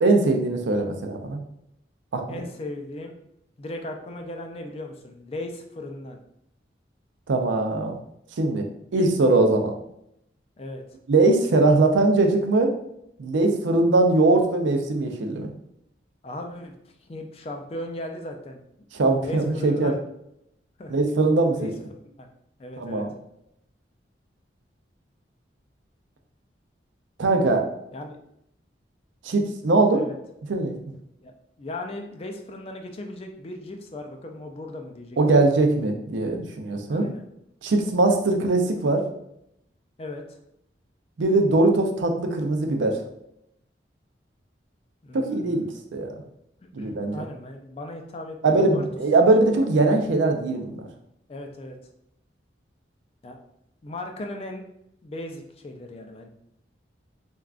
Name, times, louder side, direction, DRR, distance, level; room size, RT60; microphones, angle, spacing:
voice 1, 0.0-1.4 2.1-2.4 7.3-8.0 8.4-8.7 8.9-9.7 11.1-12.7 13.2-15.5 18.9-19.9 20.9-21.6 22.8-23.1 27.2-27.7 29.2-30.0 30.5-30.8 35.2-37.1 37.6-39.0 41.2-43.0 45.1-45.7 45.9-46.1 46.8-47.2 48.4-50.9, right 2 dB, 85° right, 4 dB, 0.5 m, -21 dB
voice 2, 2.3-3.1 3.6-6.2 10.6-10.8 16.2-16.7 17.0-18.6 19.2-20.0 20.8-21.0 21.5-21.7 22.1-22.3 22.6-23.0 27.9-28.2 29.9-30.2 31.2-35.5 36.9-37.2 40.0-40.4 45.0-45.6 46.8-48.9 51.3-51.8 53.2-53.4 53.8-54.6 55.0-56.3, left 1 dB, 30° left, 4 dB, 0.3 m, -37 dB
3.5 x 2.3 x 2.4 m, 0.77 s
head